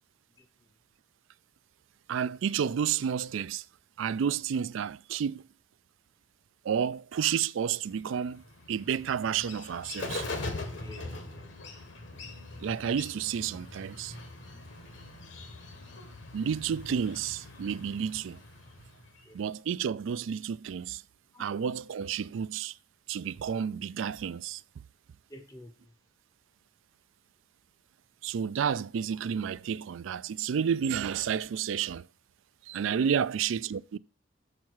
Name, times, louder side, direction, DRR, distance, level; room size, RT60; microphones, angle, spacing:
voice 1, 2.1-3.6 4.0-5.4 6.6-10.3 12.6-14.1 16.3-18.4 19.3-21.0 21.4-22.8 23.1-24.6 28.2-32.1 32.7-34.0, right 7 dB, 75° right, 0.3 m, -31 dB
Bird, 7.9-19.4, left 2 dB, 65° left, 1.5 m, -42 dB
voice 2, 10.8-11.6 19.3-19.4 21.3-21.5 25.3-25.9 32.9-33.2, left 1 dB, 15° left, 0.7 m, -49 dB
7.2 x 6.0 x 4.7 m
head